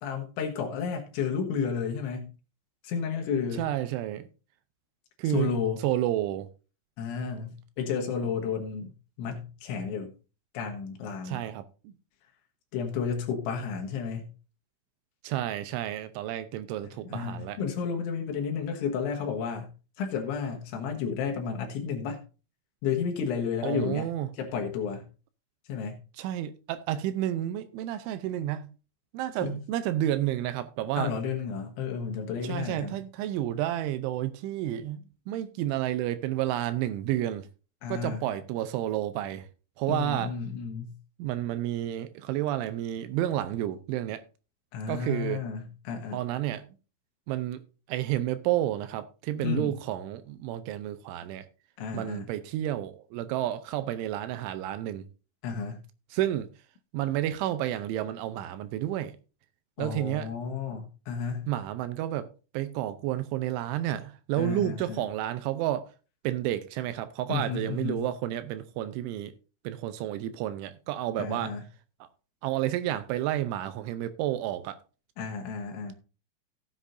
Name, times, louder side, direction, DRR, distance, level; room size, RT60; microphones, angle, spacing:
voice 1, 0.0-2.3 2.8-3.7 5.3-5.9 7.0-8.9 9.2-10.1 10.6-11.4 12.7-14.3 17.1-19.7 20.0-22.2 22.8-24.1 24.3-25.1 25.7-26.0 29.4-29.6 31.0-33.0 37.8-38.3 39.9-41.0 44.7-46.2 49.4-49.7 51.8-52.3 55.4-55.8 59.8-61.5 64.4-65.0 67.3-68.1 71.2-71.6 75.2-75.9, left 6 dB, 70° left, 3.4 m, -32 dB
voice 2, 3.6-4.3 5.2-5.5 5.8-6.5 11.3-11.9 15.2-17.6 23.6-24.3 26.2-28.7 29.1-31.1 32.4-35.0 35.3-37.5 37.9-39.5 39.8-40.3 41.2-44.2 44.9-45.4 46.1-46.6 47.3-47.6 47.9-51.5 51.9-55.1 56.1-56.5 56.9-59.2 59.8-60.3 61.5-62.3 62.5-65.9 66.2-69.3 69.6-71.5 72.4-74.8, right 13 dB, 80° right, 2.9 m, -30 dB
15.5 x 8.3 x 2.6 m
omnidirectional pair, 5.9 m